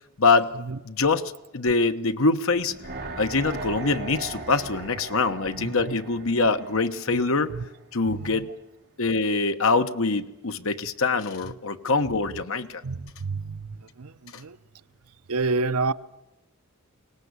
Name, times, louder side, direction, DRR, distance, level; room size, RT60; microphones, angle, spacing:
voice 1, 0.2-0.5 0.8-2.7 3.2-7.5 7.9-8.5 9.0-12.8, left 3 dB, 65° left, 1.1 m, -24 dB
sound 1, 2.5-7.7 8.0-8.1, right 3 dB, 50° right, 4.8 m, -38 dB
voice 2, 12.8-13.7 14.0-14.1 14.4-14.6 15.3-15.9, right 3 dB, 75° right, 0.7 m, -28 dB
23.5 x 19.0 x 8.3 m
head